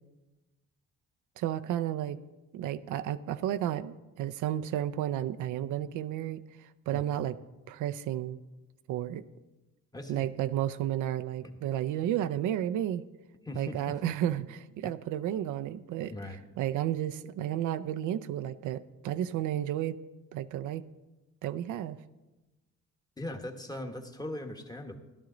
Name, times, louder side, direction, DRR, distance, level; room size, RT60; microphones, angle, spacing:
voice 1, 1.4-2.2 2.5-7.4 7.7-8.4 8.9-9.2 10.1-13.0 13.5-16.1 16.6-20.0 20.3-20.8 21.4-22.0, right 12 dB, 80° right, 11 dB, 0.5 m, -32 dB
voice 2, 9.9-10.3 11.4-11.5 13.4-14.1 14.8-14.9 16.1-16.4 23.2-25.0, left 1 dB, 15° left, 5 dB, 1.2 m, -40 dB
12.5 x 11.5 x 3.9 m, 1.1 s
cardioid pair, 90°, 30 cm